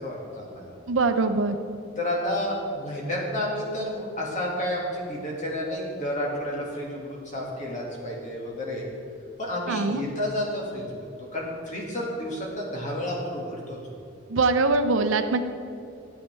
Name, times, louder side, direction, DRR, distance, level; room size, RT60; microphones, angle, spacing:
voice 1, 0.0-0.7 2.0-8.9 9.4-10.8 11.2-13.8, left 1 dB, 35° left, -3 dB, 2.0 m, -30 dB
voice 2, 0.9-1.6 9.7-10.0 14.3-15.4, right 3 dB, 65° right, 8 dB, 0.6 m, -23 dB
13.5 x 8.1 x 3.4 m, 2.5 s
head